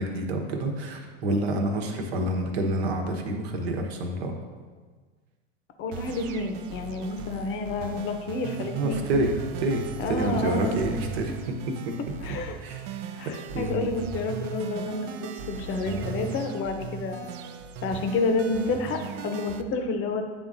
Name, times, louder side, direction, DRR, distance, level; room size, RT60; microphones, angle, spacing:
voice 1, 0.0-4.4 8.6-9.3 9.6-11.9 12.6-13.9, right 1 dB, 70° right, 3 dB, 1.1 m, -28 dB
voice 2, 5.8-9.0 10.0-10.8 12.2-12.6 13.2-17.3 17.8-20.2, left 3 dB, 40° left, 5 dB, 0.8 m, -29 dB
sound 1, 5.9-19.6, right 6 dB, 50° right, 0.5 m, -38 dB
9.8 x 3.6 x 2.7 m, 1.4 s
hypercardioid pair, 105°, 32 cm